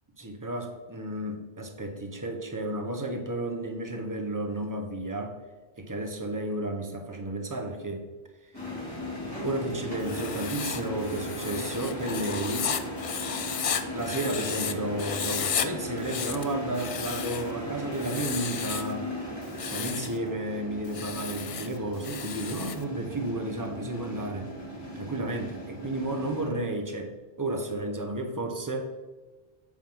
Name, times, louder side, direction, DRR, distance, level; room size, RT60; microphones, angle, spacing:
voice 1, 0.2-5.4 5.8-8.1 8.4-8.5 9.4-12.8 13.9-19.1 19.6-24.5 25.0-28.9, right 1 dB, 20° right, 4 dB, 0.7 m, -32 dB
sound 1, 8.5-26.5, equal, 20° left, 2.2 m, -37 dB
Writing, 10.0-14.7 15.0-15.7 16.0-17.5 18.0-18.9 19.4-20.1 20.8-22.8, left 7 dB, 65° left, 0.3 m, -34 dB
7.9 x 3.6 x 5.5 m, 1.3 s
omnidirectional pair, 1.2 m